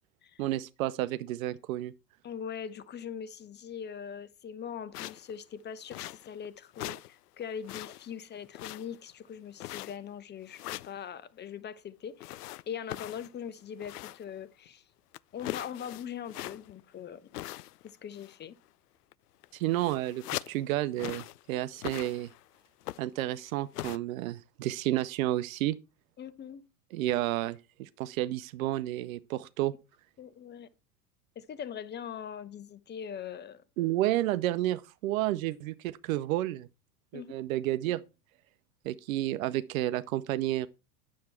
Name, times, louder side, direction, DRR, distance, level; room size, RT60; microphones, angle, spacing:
voice 1, 0.4-1.9 19.5-22.3 23.0-25.8 26.9-29.7 33.8-36.7 37.1-38.0 38.8-40.7, right 15 dB, 60° right, 0.8 m, -31 dB
voice 2, 2.2-14.8 15.3-17.3 17.8-18.5 26.2-26.6 30.2-30.7 31.4-33.6 37.1-37.3, left 8 dB, 20° left, 0.9 m, -41 dB
sound 1, 4.9-5.3 5.9-6.5 6.7-7.1 7.4-8.1 8.5-9.1 9.6-10.1 10.5-11.0 12.2-14.3 14.7-14.8 15.1-16.8 17.3-17.9 18.1-18.4 19.1-19.2 19.4-20.6 21.0-21.4 21.7-22.4 22.8-23.2 23.7-24.0, left 16 dB, 75° left, 0.5 m, -41 dB
9.5 x 7.5 x 4.4 m
hypercardioid pair, 90°, 47 cm